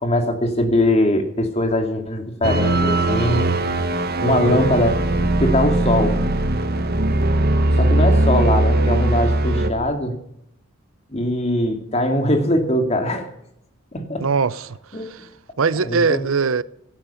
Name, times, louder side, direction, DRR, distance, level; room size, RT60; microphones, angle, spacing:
voice 1, 0.0-3.4 4.2-5.0 5.4-6.2 7.7-10.1 11.1-13.3 13.9-14.3 14.9-15.1 15.8-16.2, left 1 dB, 30° left, 2.5 m, -21 dB
sound 1, 2.4-9.7, right 1 dB, 45° right, 1.4 m, -19 dB
voice 2, 14.2-14.8 15.1-15.3 15.6-16.6, right 5 dB, 70° right, 0.6 m, -21 dB
17.5 x 12.5 x 5.7 m
head